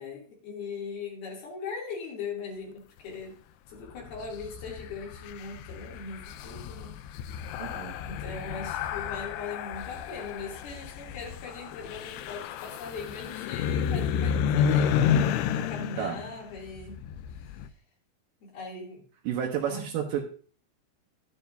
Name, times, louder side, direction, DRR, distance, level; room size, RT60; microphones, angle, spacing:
voice 1, 0.0-3.4 3.7-6.9 7.3-7.5 8.0-15.0 15.5-17.0 18.4-19.0 19.7-19.9, left 4 dB, 65° left, -3 dB, 4.6 m, -40 dB
sound 1, 3.8-17.7, left 8 dB, 80° left, 2.6 m, -31 dB
voice 2, 7.6-8.0 16.0-16.2 19.2-20.2, right 9 dB, 70° right, 2 dB, 2.4 m, -30 dB
11.5 x 9.4 x 2.7 m, 0.42 s
omnidirectional pair, 4.8 m